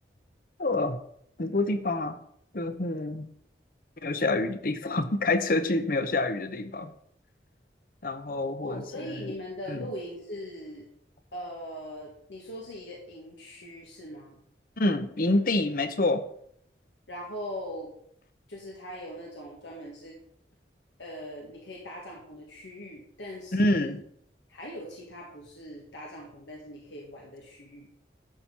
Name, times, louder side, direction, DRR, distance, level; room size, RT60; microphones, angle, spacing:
voice 1, 0.6-1.0 1.4-2.2 2.5-3.3 4.0-6.9 8.0-9.3 9.7-9.9 14.8-16.3 23.5-24.0, left 2 dB, 50° left, 0.8 m, -27 dB
voice 2, 8.6-10.9 11.3-14.4 17.1-17.9 18.5-20.2 21.0-23.9 24.5-27.9, equal, 90° left, 1.9 m, -41 dB
12.0 x 4.5 x 5.5 m
head